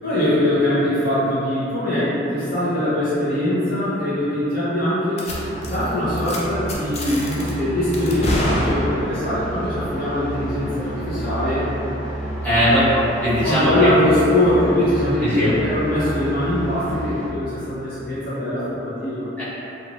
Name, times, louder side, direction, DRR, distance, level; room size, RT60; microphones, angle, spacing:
voice 1, 0.0-5.3 5.6-11.6 12.2-12.3 12.6-12.7 13.4-19.2, left 1 dB, 50° left, -12 dB, 0.7 m, -22 dB
sound 1, 5.2-5.4 5.6-5.9 6.2-6.4 6.7-7.5 7.9-9.3, left 1 dB, 35° left, 0.3 m, -26 dB
sound 2, 5.2-17.3, right 1 dB, 35° right, 0.6 m, -30 dB
voice 2, 12.4-13.9 15.2-15.5 19.4-19.5, equal, 10° left, -16 dB, 1.1 m, -19 dB
3.0 x 2.6 x 2.5 m, 3.0 s
head